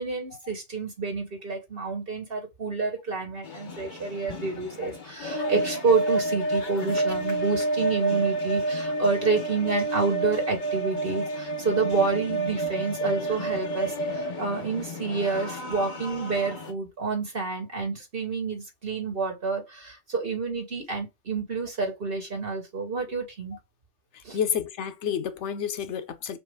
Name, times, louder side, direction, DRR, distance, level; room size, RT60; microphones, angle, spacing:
voice 1, 0.0-23.6 24.2-24.4, right 4 dB, 55° right, 1.9 m, -29 dB
sound 1, 3.4-16.7, right 2 dB, 45° left, 1.0 m, -30 dB
voice 2, 24.3-26.4, left 8 dB, 80° left, 1.0 m, -29 dB
6.1 x 2.4 x 3.5 m
omnidirectional pair, 1.2 m